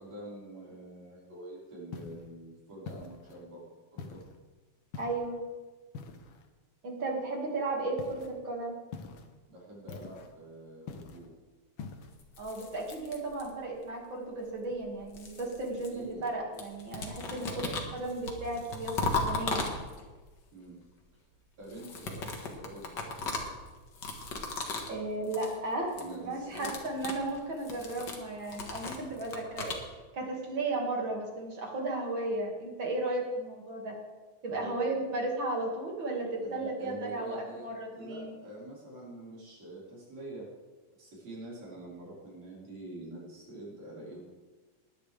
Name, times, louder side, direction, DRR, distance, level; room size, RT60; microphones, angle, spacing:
voice 1, 0.0-3.6 3.9-4.2 9.5-11.3 15.9-16.3 17.4-17.8 20.5-20.8 21.6-23.5 26.0-26.7 34.5-34.9 36.4-37.7 37.9-40.5 41.0-44.2, right 1 dB, 60° right, -7 dB, 6.1 m, -46 dB
sound 1, 1.9-2.3 2.9-3.4 4.0-4.4 4.9-5.4 5.9-6.5 8.0-8.3 8.9-9.3 9.9-10.3 10.9-11.3 11.8-12.1, left 5 dB, 70° left, 1.2 m, -44 dB
voice 2, 5.0-5.4 6.8-8.8 12.4-17.7 17.9-19.7 24.9-29.7 30.1-33.9 34.4-38.3, right 2 dB, 40° right, 0 dB, 2.7 m, -34 dB
sound 2, 12.2-13.8 14.7-16.3 16.6-20.2 21.6-25.0 25.2-25.6 25.8-26.1 26.4-29.8, left 3 dB, 45° left, 1.7 m, -37 dB
20.0 x 10.5 x 3.5 m, 1.3 s
omnidirectional pair, 3.5 m